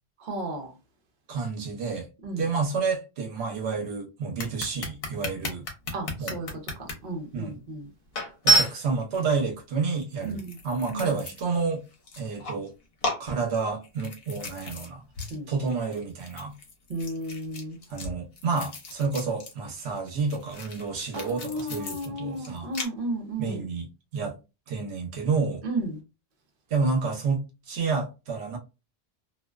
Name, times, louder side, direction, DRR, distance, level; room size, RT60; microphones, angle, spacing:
voice 1, 0.2-0.7 2.2-2.4 5.9-6.5 6.8-7.9 10.2-10.6 10.9-11.1 15.3-15.5 16.9-17.8 21.1-23.7 25.6-26.0, right 1 dB, 55° right, 0.9 m, -33 dB
voice 2, 1.3-2.1 2.4-5.7 6.2-6.4 7.3-7.6 8.4-11.8 12.2-12.7 13.2-15.0 15.5-16.5 17.9-22.7 23.4-24.4 24.7-25.6 26.7-28.6, right 4 dB, 85° right, 0.9 m, -29 dB
sound 1, 4.4-6.9 7.6-7.7 8.1-9.2 10.0-11.6 11.9-12.7 13.0-14.9 15.2-15.4 15.6-19.5 19.8-22.9, right 1 dB, 65° left, 0.9 m, -31 dB
2.4 x 2.2 x 2.3 m
omnidirectional pair, 1.1 m